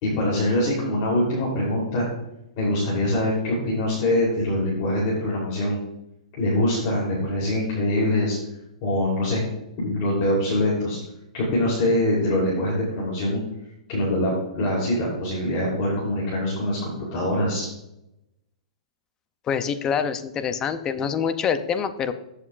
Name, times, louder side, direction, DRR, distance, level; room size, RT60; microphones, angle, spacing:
voice 1, 0.0-2.0 2.6-5.8 6.4-8.4 8.8-9.4 9.8-11.0 11.3-13.4 13.9-17.7, left 1 dB, 35° left, -5 dB, 3.2 m, -24 dB
voice 2, 19.5-22.1, left 7 dB, 15° left, 11 dB, 0.5 m, -25 dB
14.5 x 6.7 x 2.4 m, 0.84 s
hypercardioid pair, 165°, 4 cm